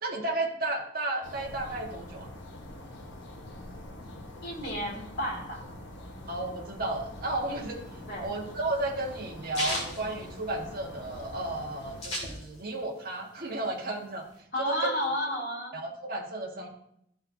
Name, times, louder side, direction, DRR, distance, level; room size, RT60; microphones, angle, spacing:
voice 1, 0.0-2.3 6.3-14.2 14.6-14.9 15.7-16.7, right 2 dB, 50° right, -1 dB, 1.5 m, -33 dB
sound 1, 1.2-12.0, left 1 dB, 70° left, 1.2 m, -45 dB
voice 2, 4.4-5.6 8.1-8.3 14.5-15.8, equal, 55° left, -4 dB, 2.9 m, -32 dB
sound 2, 7.8-11.0 11.3-11.4 11.6-12.9 13.2-14.3, left 1 dB, 35° left, 2.5 m, -35 dB
13.0 x 5.6 x 2.7 m, 0.74 s
head